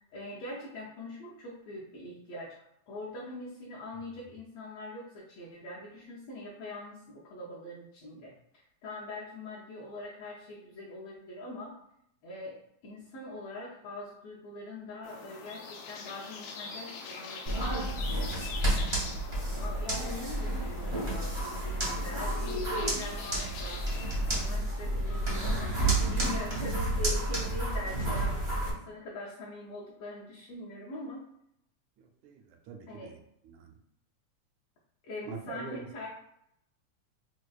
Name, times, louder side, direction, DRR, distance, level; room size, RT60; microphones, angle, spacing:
voice 1, 0.0-2.5 2.9-11.7 12.2-17.7 18.1-18.3 19.5-23.9 24.2-25.8 26.1-31.2 32.9-33.1 35.0-36.1, left 2 dB, 70° left, -6 dB, 1.5 m, -43 dB
sound 1, 15.0-24.5, left 5 dB, 90° left, 2.0 m, -44 dB
sound 2, 17.5-28.7, right 1 dB, 65° right, 0.6 m, -31 dB
voice 2, 32.0-33.2 33.4-33.7 35.3-35.9, right 5 dB, 85° right, 4 dB, 1.9 m, -44 dB
6.1 x 2.2 x 2.3 m, 0.75 s
omnidirectional pair, 3.3 m